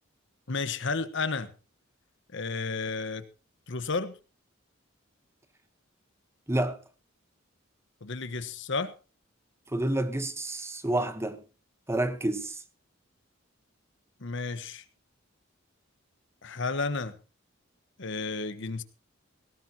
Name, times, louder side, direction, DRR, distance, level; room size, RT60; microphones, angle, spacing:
voice 1, 0.5-1.5 2.3-3.2 3.7-4.2 8.0-8.9 14.2-14.8 16.4-17.1 18.0-18.8, left 4 dB, 65° left, 1.2 m, -32 dB
voice 2, 6.5-6.8 9.7-11.4 11.9-12.6, right 1 dB, 15° right, 1.0 m, -29 dB
18.0 x 16.0 x 2.9 m
head